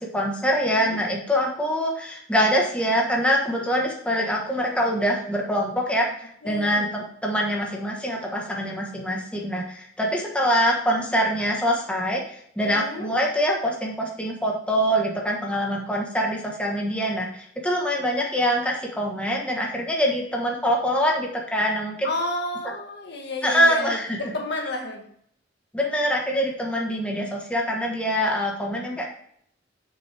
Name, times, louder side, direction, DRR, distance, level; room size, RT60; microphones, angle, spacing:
voice 1, 0.1-22.1 23.4-24.2 25.7-29.0, equal, 5° left, -1 dB, 1.4 m, -24 dB
voice 2, 6.4-7.0 12.6-13.1 22.0-25.1, left 2 dB, 65° left, 1 dB, 1.6 m, -31 dB
7.4 x 6.3 x 3.5 m, 0.65 s
head